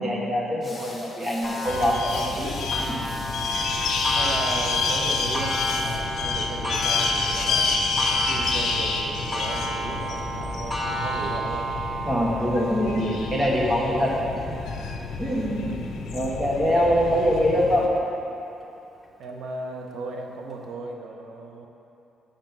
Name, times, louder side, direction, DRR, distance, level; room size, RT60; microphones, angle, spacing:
voice 1, 0.0-2.5 2.9-3.0 3.5-3.6 12.1-14.6 15.2-15.7 16.1-17.9, equal, 25° right, -5 dB, 1.7 m, -24 dB
sound 1, 0.6-6.0, left 2 dB, 20° left, 1.7 m, -43 dB
Clock, 1.4-16.7 17.3-17.4 18.0-18.1 19.0-19.1, right 1 dB, 5° right, 1.2 m, -33 dB
sound 2, 1.7-17.9, left 4 dB, 70° left, 0.8 m, -29 dB
voice 2, 4.1-11.7 15.2-15.6 19.2-21.7, right 3 dB, 75° right, 2 dB, 0.8 m, -36 dB
7.5 x 5.2 x 6.0 m, 2.8 s
cardioid pair, 90°, 0 cm